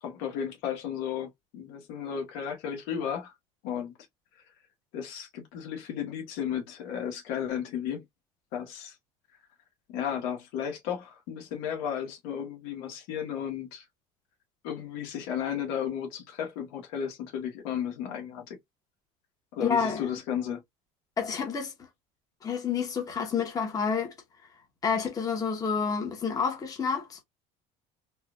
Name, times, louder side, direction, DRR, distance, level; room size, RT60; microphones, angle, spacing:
voice 1, 0.0-3.3 3.6-3.9 4.9-8.0 8.5-8.9 9.9-13.8 14.6-18.6 19.5-20.6, left 8 dB, 80° left, 1.4 m, -34 dB
voice 2, 19.6-20.2 21.2-21.7 22.4-24.1 24.8-27.2, left 6 dB, 25° left, 1.2 m, -29 dB
4.1 x 2.5 x 2.5 m
cardioid pair, 150°, 15 cm